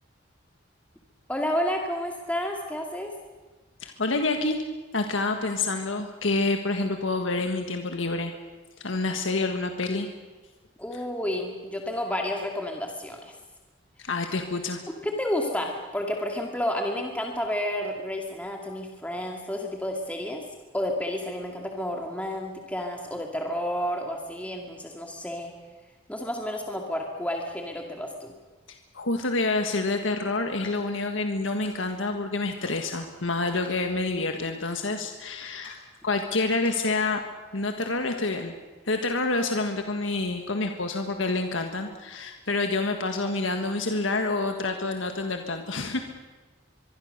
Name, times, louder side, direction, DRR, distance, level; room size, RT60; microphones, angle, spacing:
voice 1, 1.3-3.1 10.8-13.4 14.9-20.4 20.7-25.5 26.1-28.3, left 1 dB, 5° left, 1 dB, 2.2 m, -31 dB
voice 2, 3.8-4.6 4.9-8.3 8.8-10.1 14.0-14.8 28.9-35.8 36.0-37.2 37.5-38.5 38.9-46.0, left 3 dB, 85° left, 5 dB, 1.7 m, -28 dB
Clock, 29.6-29.8 30.6-30.8 31.6-31.8 32.6-32.8 33.6-33.8 34.6-34.9 35.6-35.8 36.6-36.8, left 3 dB, 30° left, 7.0 m, -49 dB
24.0 x 23.5 x 6.7 m, 1.2 s
head